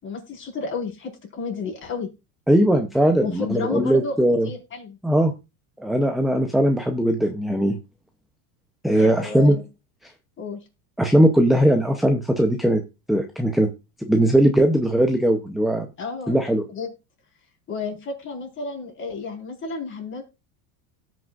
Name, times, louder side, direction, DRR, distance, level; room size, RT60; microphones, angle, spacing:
voice 1, 0.0-2.1 3.2-4.2 4.4-5.0 8.9-9.6 10.4-10.6 16.0-16.4 16.7-16.9 17.7-20.2, left 4 dB, 25° left, 0 dB, 4.5 m, -31 dB
voice 2, 2.5-4.5 5.0-5.3 5.8-7.7 8.8-9.6 11.0-12.8 13.1-13.7 14.0-15.9 16.3-16.6, right 1 dB, ahead, 5 dB, 0.7 m, -19 dB
18.0 x 6.2 x 2.5 m, 0.27 s
supercardioid pair, 145°, 45 cm